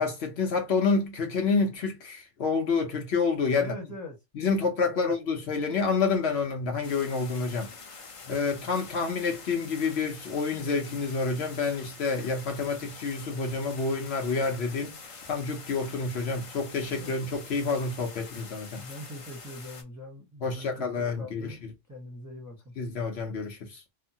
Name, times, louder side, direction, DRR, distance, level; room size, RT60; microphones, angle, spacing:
voice 1, 0.0-3.7 4.4-7.7 8.3-14.9 15.3-18.8 20.4-21.5 22.8-23.8, left 4 dB, 65° left, 0.9 m, -28 dB
voice 2, 3.6-4.2 4.9-5.1 17.0-17.3 18.8-22.7, left 1 dB, 15° right, 0.8 m, -43 dB
sound 1, 6.8-19.8, left 4 dB, 50° left, 0.4 m, -46 dB
2.9 x 2.1 x 2.6 m
omnidirectional pair, 1.2 m